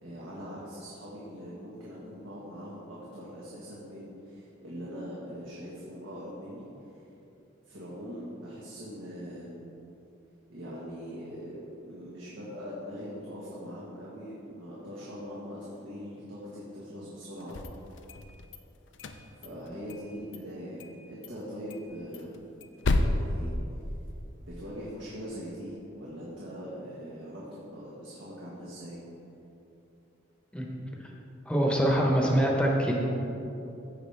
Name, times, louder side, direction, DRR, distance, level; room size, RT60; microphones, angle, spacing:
voice 1, 0.0-6.6 7.6-9.7 10.5-17.6 19.4-22.5 22.8-23.5 24.4-29.0, equal, 75° right, -7 dB, 1.5 m, -42 dB
sound 1, 17.4-18.6 18.9-20.1 20.3-20.4 20.8-21.0 21.2-21.3 21.7-24.3, left 2 dB, 65° left, 0.5 m, -31 dB
voice 2, 31.5-32.9, equal, 5° left, -1 dB, 1.0 m, -24 dB
15.0 x 5.1 x 3.4 m, 2.9 s
head